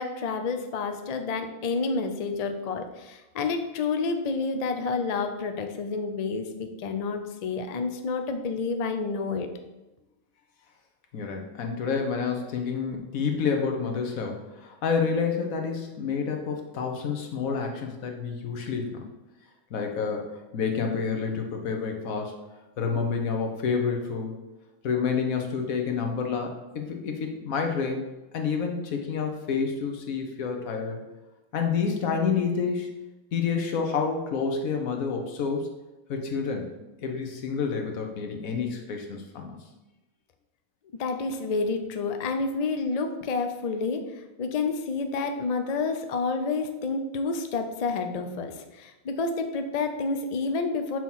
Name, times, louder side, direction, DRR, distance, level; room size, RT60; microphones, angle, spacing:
voice 1, 0.0-9.5 41.0-44.0 44.4-51.0, left 4 dB, 60° left, 6 dB, 0.4 m, -29 dB
voice 2, 11.1-19.1 19.7-22.4 22.8-24.3 24.8-28.0 28.3-31.0 31.5-33.0 33.3-35.7 36.1-36.7 37.0-39.6, left 5 dB, 90° left, 3 dB, 1.3 m, -29 dB
6.2 x 3.0 x 5.5 m, 1.0 s
omnidirectional pair, 1.4 m